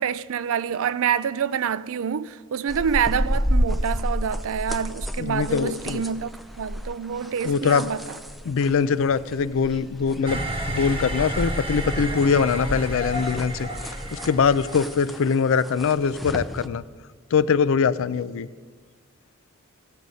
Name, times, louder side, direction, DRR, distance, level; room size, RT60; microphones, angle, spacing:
voice 1, 0.0-6.3 6.6-8.0, right 7 dB, 65° right, 0.4 m, -27 dB
sound 1, 2.7-16.7, equal, ahead, 0.4 m, -31 dB
voice 2, 5.2-6.0 7.4-7.9 8.5-13.7 14.1-16.8 17.3-18.5, left 6 dB, 65° left, 0.4 m, -22 dB
sound 2, 10.3-15.0, right 1 dB, 25° right, 1.1 m, -30 dB
16.5 x 6.3 x 5.4 m
head